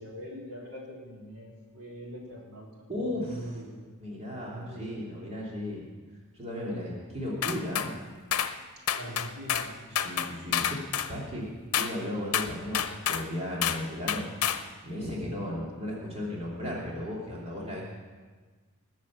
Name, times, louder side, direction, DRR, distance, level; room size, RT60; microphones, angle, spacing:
voice 1, 0.0-2.7 3.1-3.9 4.5-5.0 8.9-9.8, equal, 70° right, -2 dB, 3.6 m, -42 dB
voice 2, 2.9-3.6 4.0-5.9 6.3-7.9 9.9-11.5 11.8-14.3 14.8-17.8, left 1 dB, 30° right, -4 dB, 2.7 m, -35 dB
sound 1, 7.4-7.9 8.3-8.5 8.9-9.7 9.9-11.1 11.7-11.9 12.3-13.3 13.6-13.8 14.1-14.6, left 9 dB, 80° left, 0.8 m, -28 dB
19.5 x 7.4 x 7.2 m, 1.4 s
head